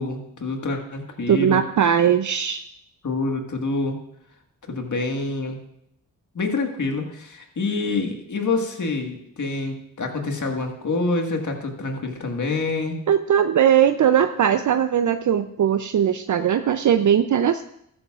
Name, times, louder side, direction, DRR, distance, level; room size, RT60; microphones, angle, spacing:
voice 1, 0.0-1.6 3.0-4.0 4.7-5.6 6.3-13.0, left 3 dB, 60° left, 3 dB, 1.7 m, -26 dB
voice 2, 1.3-2.6 13.1-17.6, right 9 dB, 60° right, 10 dB, 0.5 m, -19 dB
13.5 x 11.5 x 2.4 m, 0.74 s
cardioid pair, 50°, 34 cm